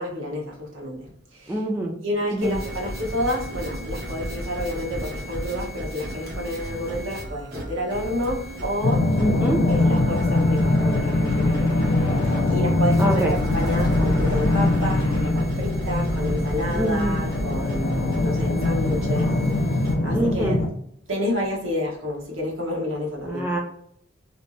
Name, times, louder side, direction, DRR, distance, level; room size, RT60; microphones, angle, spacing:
voice 1, 0.0-1.7 2.0-9.1 9.6-11.8 12.2-20.6 21.1-23.5, left 1 dB, 85° right, 1.3 m, -29 dB
voice 2, 1.5-1.9 2.3-2.6 9.2-9.6 13.0-13.3 16.7-17.2 20.1-20.6 23.3-23.6, right 1 dB, 10° right, 0.4 m, -24 dB
sound 1, 2.4-20.0, equal, 50° right, 1.0 m, -33 dB
sound 2, 8.8-20.7, left 2 dB, 65° left, 0.5 m, -22 dB
sound 3, 9.8-15.3, left 2 dB, 20° left, 0.8 m, -34 dB
3.3 x 3.1 x 2.7 m
head